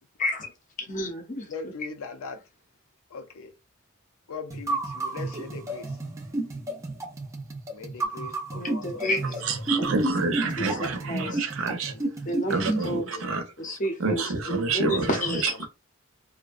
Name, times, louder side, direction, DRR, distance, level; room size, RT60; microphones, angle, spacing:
voice 1, 0.2-0.5 0.9-1.5 8.5-9.3 9.8-9.9 10.6-11.4 12.3-13.1 13.6-14.2 14.7-15.4, equal, 35° left, 0.6 m, -30 dB
voice 2, 1.5-2.4 3.1-3.5 4.3-6.0 7.7-9.4 10.6-10.9 11.2-11.4 11.9-12.3 13.0-13.7 14.2-14.6 15.2-15.7, left 4 dB, 80° left, 0.5 m, -41 dB
sound 1, 4.5-13.0, right 2 dB, 15° right, 0.4 m, -32 dB
voice 3, 9.4-11.9 12.5-13.4 14.0-15.7, right 3 dB, 70° right, 0.6 m, -28 dB
2.5 x 2.1 x 2.4 m
head